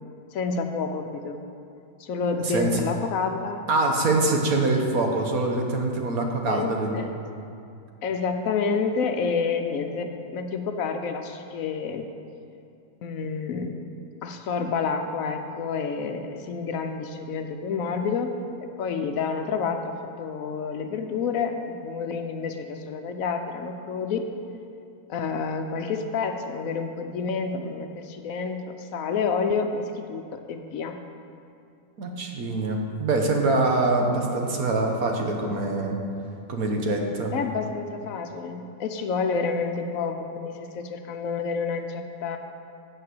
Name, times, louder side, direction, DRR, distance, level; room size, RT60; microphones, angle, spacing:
voice 1, 0.3-1.4 2.0-3.6 6.5-7.1 8.0-12.0 13.0-13.8 14.2-18.3 18.6-24.2 25.1-31.0 34.2-34.4 37.3-42.4, left 5 dB, 70° left, 6 dB, 1.0 m, -29 dB
voice 2, 2.4-2.8 3.7-7.0 32.0-36.0 36.5-37.4, right 2 dB, 75° right, 2 dB, 1.5 m, -24 dB
8.5 x 5.4 x 7.7 m, 2.5 s
omnidirectional pair, 1.6 m